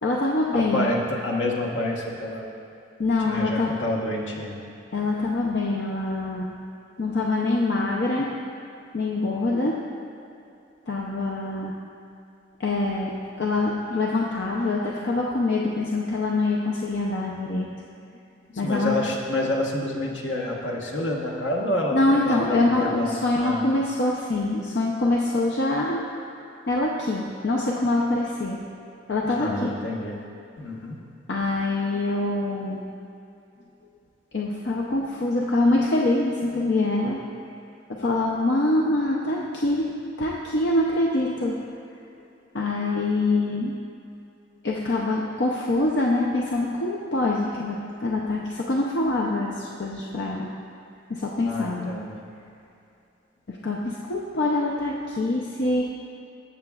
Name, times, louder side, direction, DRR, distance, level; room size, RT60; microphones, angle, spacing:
voice 1, 0.0-0.9 3.0-3.7 4.9-6.5 7.0-8.3 8.9-9.8 10.9-11.7 12.6-17.7 18.6-19.0 21.9-26.1 26.7-28.6 29.1-29.7 31.3-32.8 34.3-37.2 37.9-39.9 40.2-41.6 42.5-43.7 44.6-50.5 51.1-51.9 53.5-55.8, left 2 dB, 65° left, -3 dB, 0.6 m, -24 dB
voice 2, 0.5-2.5 3.2-4.5 18.5-23.1 23.4-23.6 29.2-30.2 30.6-31.0 51.4-52.2, left 1 dB, 80° left, -2 dB, 1.2 m, -28 dB
14.5 x 6.8 x 2.4 m, 2.7 s
head